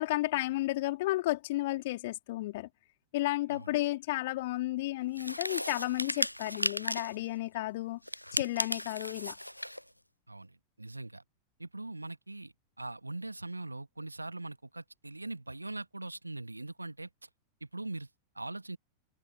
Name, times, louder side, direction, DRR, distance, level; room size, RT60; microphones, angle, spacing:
voice 1, 0.0-2.7 3.1-8.0 8.3-9.4, left 18 dB, 50° left, 3.8 m, -32 dB
sound 1, 5.1-7.2 8.0-9.8, equal, 90° left, 0.4 m, -35 dB
voice 2, 10.3-11.2 11.6-17.1 17.6-18.1 18.4-18.8, right 2 dB, 85° right, 1.9 m, -41 dB
figure-of-eight pair, 90°, 0 cm